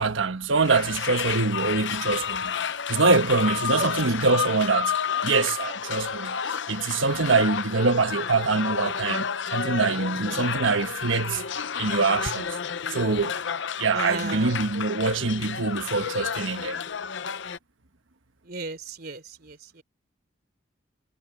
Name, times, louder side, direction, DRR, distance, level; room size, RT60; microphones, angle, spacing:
voice 1, 0.0-2.5 2.9-4.9 5.2-6.4 6.7-11.4 11.8-12.6 12.9-13.4 13.8-16.8, right 3 dB, 80° right, 1.3 m, -24 dB
sound 1, 0.6-17.6, left 7 dB, 70° left, 0.7 m, -31 dB
voice 2, 13.9-14.6 18.5-19.8, right 2 dB, 50° right, 3.4 m, -35 dB
head